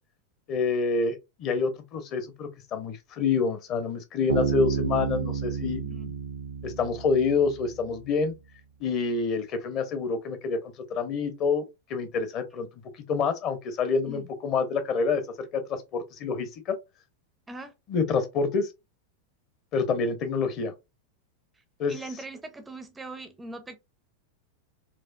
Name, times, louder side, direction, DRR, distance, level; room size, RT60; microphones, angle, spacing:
voice 1, 0.5-5.8 6.6-8.4 8.8-12.8 13.1-16.8 17.9-18.7 19.7-20.7 21.8-22.0, left 4 dB, 35° left, 0.7 m, -27 dB
Bass guitar, 4.3-7.8, right 5 dB, 75° right, 0.5 m, -30 dB
voice 2, 5.8-6.1 14.1-14.3 17.5-17.7 21.9-23.8, right 2 dB, 10° right, 0.5 m, -41 dB
4.2 x 2.4 x 2.3 m
figure-of-eight pair, 90°, 0 cm